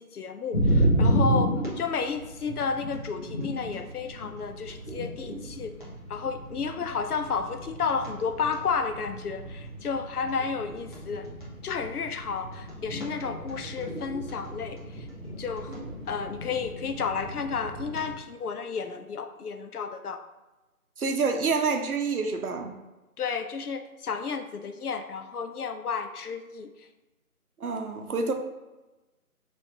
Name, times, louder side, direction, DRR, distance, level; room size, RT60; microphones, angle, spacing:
voice 1, 0.0-5.7 6.1-11.3 11.6-15.1 15.4-20.2 23.2-26.7, left 5 dB, 80° left, 7 dB, 0.6 m, -32 dB
sound 1, 0.5-18.1, right 1 dB, 35° left, 0.9 m, -32 dB
voice 2, 21.0-22.8 27.6-28.3, right 4 dB, 75° right, 5 dB, 0.7 m, -27 dB
4.7 x 3.0 x 2.8 m, 1.1 s
figure-of-eight pair, 175°, 45 cm